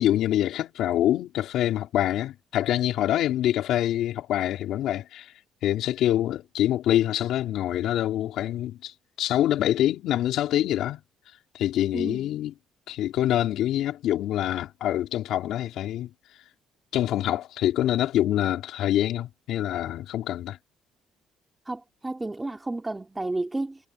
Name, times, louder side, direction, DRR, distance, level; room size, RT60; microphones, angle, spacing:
voice 1, 0.0-5.3 5.6-8.9 9.2-11.0 11.5-12.5 12.9-16.1 16.9-20.6, left 12 dB, 70° left, 4.7 m, -25 dB
voice 2, 11.9-12.3 21.7-23.8, right 2 dB, 10° right, 3.5 m, -32 dB
cardioid pair, 150°, 0 cm